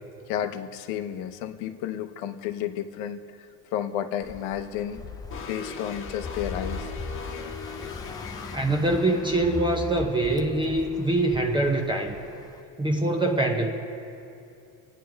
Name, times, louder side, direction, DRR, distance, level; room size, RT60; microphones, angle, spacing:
voice 1, 0.3-5.0 5.5-6.9 7.3-7.6, left 10 dB, 70° left, 8 dB, 0.9 m, -32 dB
sound 1, 4.2-12.6, left 4 dB, 10° left, 0.4 m, -39 dB
sound 2, 5.3-8.6, left 5 dB, 35° left, 1.2 m, -38 dB
voice 2, 8.5-12.2 12.8-13.7, right 2 dB, 15° right, 2 dB, 0.8 m, -24 dB
27.5 x 9.3 x 3.5 m, 2.6 s
cardioid pair, 125°, 37 cm